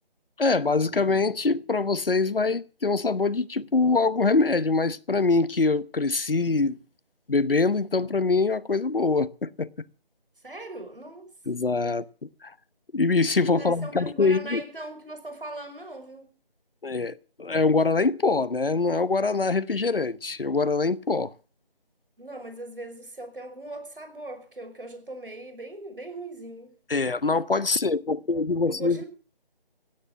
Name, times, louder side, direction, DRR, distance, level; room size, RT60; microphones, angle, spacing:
voice 1, 0.4-6.8 7.3-9.7 11.5-12.0 12.4-12.5 12.9-14.6 16.8-21.3 26.9-29.0, left 3 dB, 70° left, 1.0 m, -24 dB
voice 2, 10.4-11.3 11.8-12.0 13.5-16.3 22.2-26.7 28.7-29.1, right 2 dB, 65° right, 5.6 m, -39 dB
16.0 x 10.0 x 7.3 m
figure-of-eight pair, 170°, 29 cm